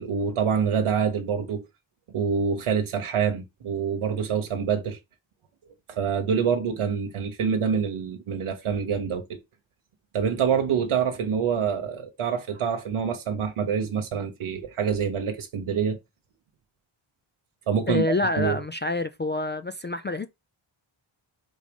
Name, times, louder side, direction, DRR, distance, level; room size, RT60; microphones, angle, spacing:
voice 1, 0.0-1.6 2.1-5.0 5.9-9.4 10.1-16.0 17.7-18.0 18.4-18.6, right 7 dB, 85° right, 1.1 m, -26 dB
voice 2, 17.9-20.3, left 2 dB, 25° left, 0.3 m, -27 dB
4.8 x 3.9 x 5.2 m
wide cardioid pair, 130°, 49 cm